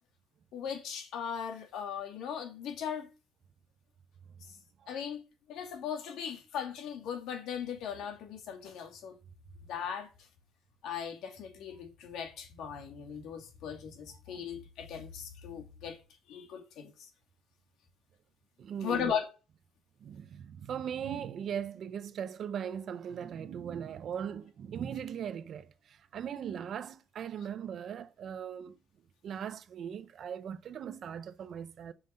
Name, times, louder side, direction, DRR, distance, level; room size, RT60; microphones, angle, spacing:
voice 1, 0.5-3.1 4.9-5.2 5.5-9.2 9.6-10.1 10.8-16.0 16.3-17.1 18.8-19.3, left 8 dB, 85° left, 2.6 m, -38 dB
voice 2, 18.6-19.2 20.0-28.8 29.2-31.9, right 8 dB, 45° right, 0.7 m, -39 dB
7.8 x 5.7 x 7.7 m
cardioid pair, 180°, 0 cm